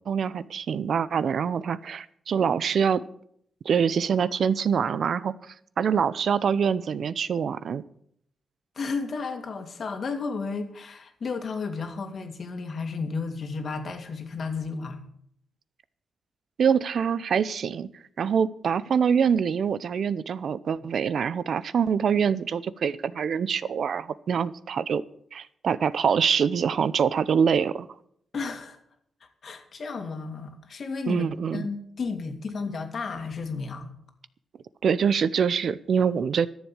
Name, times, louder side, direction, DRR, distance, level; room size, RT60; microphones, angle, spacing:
voice 1, 0.1-3.0 3.6-7.8 16.6-17.9 18.2-25.0 25.3-27.9 31.1-31.7 34.8-36.5, right 7 dB, 65° right, 17 dB, 0.7 m, -25 dB
voice 2, 8.8-15.0 28.3-28.8 29.4-31.3 31.5-33.9, left 4 dB, 55° left, 6 dB, 2.3 m, -33 dB
13.5 x 7.3 x 8.9 m, 0.69 s
cardioid pair, 95°, 0 cm